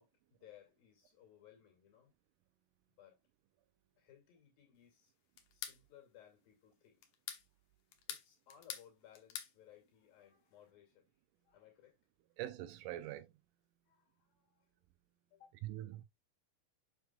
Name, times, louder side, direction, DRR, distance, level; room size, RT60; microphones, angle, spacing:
voice 1, 0.0-2.1 3.0-3.2 4.0-5.1 5.5-7.0 8.1-11.1 11.4-12.0 13.9-14.6 15.3-15.5, left 10 dB, 85° left, 4.2 m, -62 dB
sound 1, 5.4-5.8 7.0-7.5 7.9-8.9 9.1-9.5, left 9 dB, 65° left, 2.0 m, -45 dB
voice 2, 12.4-13.3 15.6-16.0, right 14 dB, 80° right, 2.0 m, -43 dB
7.3 x 7.0 x 2.3 m
omnidirectional pair, 4.0 m